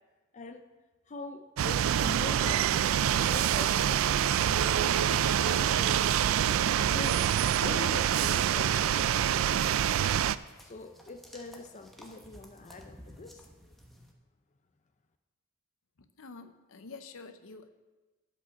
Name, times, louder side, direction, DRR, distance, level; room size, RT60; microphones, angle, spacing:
voice 1, 0.3-0.6 1.1-4.1 4.4-6.0 6.4-10.2 10.6-13.4, left 3 dB, 35° left, 6 dB, 0.5 m, -44 dB
sound 1, 1.6-10.4, right 9 dB, 70° right, 0.3 m, -26 dB
sound 2, 7.9-14.1, equal, ahead, 1.1 m, -55 dB
voice 2, 16.2-17.7, left 4 dB, 70° left, 9 dB, 0.7 m, -47 dB
12.5 x 5.3 x 6.4 m, 1.2 s
head